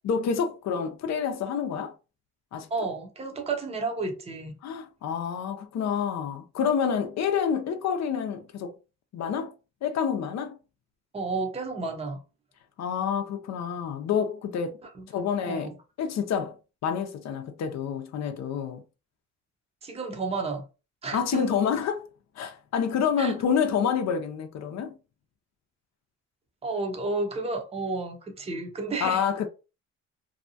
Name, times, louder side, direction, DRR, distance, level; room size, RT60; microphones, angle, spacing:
voice 1, 0.0-1.9 2.5-2.7 4.6-8.8 9.1-9.5 9.8-10.5 12.8-14.8 15.1-15.7 16.0-16.6 16.8-18.8 21.1-22.1 22.4-25.0 29.0-29.5, left 7 dB, 60° left, 0.5 m, -28 dB
voice 2, 2.7-4.5 11.1-12.2 14.9-15.1 15.4-15.7 19.8-20.6 21.0-21.4 23.2-23.3 26.6-29.2, right 3 dB, 20° right, 0.6 m, -31 dB
2.7 x 2.2 x 2.6 m
cardioid pair, 90°, 30 cm